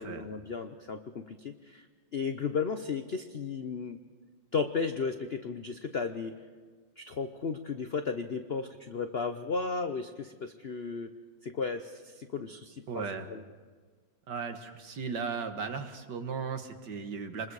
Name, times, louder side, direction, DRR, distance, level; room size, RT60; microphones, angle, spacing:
voice 1, 0.0-1.8 2.1-4.0 4.5-6.3 7.0-11.1 11.4-13.0 13.3-13.4, left 5 dB, 75° left, 7 dB, 0.5 m, -34 dB
voice 2, 12.9-13.3 14.3-17.5, right 5 dB, 60° right, 7 dB, 1.9 m, -36 dB
27.5 x 21.5 x 4.8 m, 1.5 s
omnidirectional pair, 2.2 m